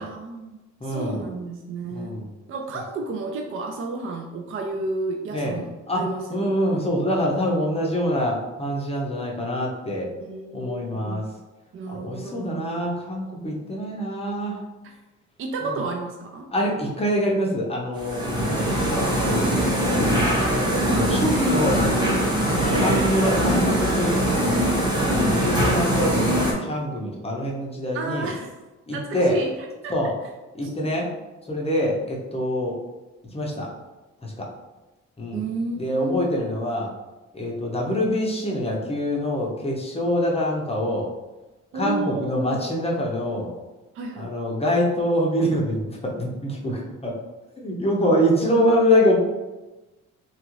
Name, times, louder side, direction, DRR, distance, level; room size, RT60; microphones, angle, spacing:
voice 1, 0.0-2.2 2.5-6.4 6.7-6.9 10.2-11.3 11.7-12.8 15.4-16.5 22.3-22.7 25.0-25.7 27.9-28.6 28.9-29.9 30.6-30.7 35.3-36.4 41.7-42.6 43.9-44.3, right 3 dB, 45° right, 2 dB, 0.4 m, -32 dB
voice 2, 0.8-1.3 1.9-2.3 5.3-5.6 5.9-6.0 6.3-10.1 10.5-11.3 11.9-14.6 15.6-15.7 16.5-18.9 20.8-21.9 22.8-24.4 25.4-28.3 28.9-29.4 29.9-30.1 30.6-31.1 31.5-32.7 33.3-33.7 34.2-34.5 35.2-35.4 35.8-36.9 37.3-41.1 41.7-43.6 44.2-47.1 47.6-49.2, equal, 20° left, -2 dB, 0.6 m, -25 dB
sound 1, 18.0-26.5, equal, 15° right, 0.9 m, -22 dB
2.9 x 2.4 x 3.0 m, 1.1 s
cardioid pair, 90°, 30 cm